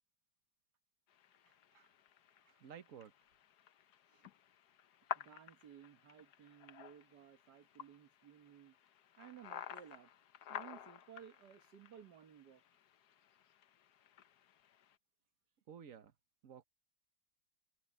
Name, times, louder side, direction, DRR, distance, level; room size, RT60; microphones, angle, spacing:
sound 1, 1.1-15.0, left 10 dB, 75° left, 1.4 m, -52 dB
voice 1, 1.5-1.9 2.5-2.6 4.1-4.3 5.2-8.8 9.2-10.1 10.5-12.6, right 9 dB, 80° right, 1.9 m, -58 dB
voice 2, 2.6-3.1 15.7-16.1 16.4-16.6, right 8 dB, 55° right, 1.4 m, -53 dB
omnidirectional pair, 1.8 m